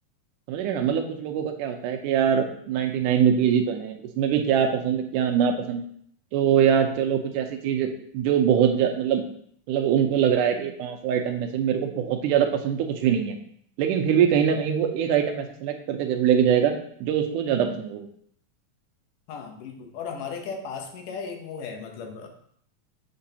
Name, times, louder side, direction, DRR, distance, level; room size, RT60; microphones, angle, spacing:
voice 1, 0.5-5.8 6.3-7.9 8.1-9.2 9.7-13.4 13.8-18.1, right 8 dB, 80° right, 5 dB, 2.2 m, -23 dB
voice 2, 19.3-22.3, left 5 dB, 80° left, 3 dB, 2.5 m, -36 dB
6.8 x 6.1 x 2.8 m, 0.64 s
omnidirectional pair, 3.7 m